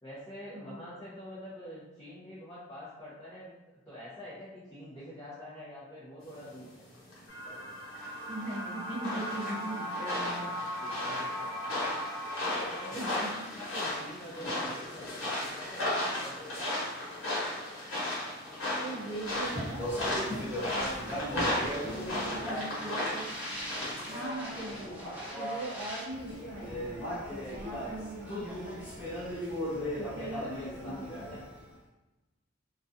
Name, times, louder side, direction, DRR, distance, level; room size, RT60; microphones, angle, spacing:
voice 1, 0.0-6.8 10.6-12.0 12.4-13.2 13.6-16.8 21.4-22.3 29.6-31.4, equal, 15° left, -11 dB, 0.6 m, -46 dB
sound 1, 7.1-24.3, left 1 dB, 75° left, 1.0 m, -35 dB
sound 2, 7.3-12.9, equal, 55° left, 0.7 m, -38 dB
voice 2, 8.3-10.5 12.9-13.5 18.8-21.2 22.1-23.3 24.1-25.0 25.4-28.8 30.0-30.4 30.9-31.0 31.3-31.4, right 2 dB, 35° right, -7 dB, 0.6 m, -40 dB
Speech, 19.2-31.6, equal, 5° right, 1.0 m, -37 dB
2.3 x 2.3 x 2.6 m, 1.1 s
head